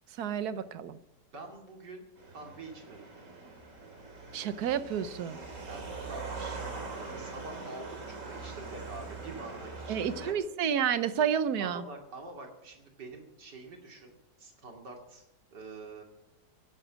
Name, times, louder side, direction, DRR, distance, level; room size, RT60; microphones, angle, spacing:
voice 1, 0.2-1.0 4.3-5.4 9.9-11.8, right 8 dB, 70° right, 13 dB, 1.3 m, -30 dB
voice 2, 1.3-3.1 5.6-10.3 11.6-15.2 15.5-16.0, right 3 dB, 85° right, 2 dB, 3.1 m, -46 dB
sound 1, 2.2-10.3, right 3 dB, 50° right, 2.8 m, -42 dB
16.0 x 10.5 x 6.3 m, 0.87 s
omnidirectional pair, 1.8 m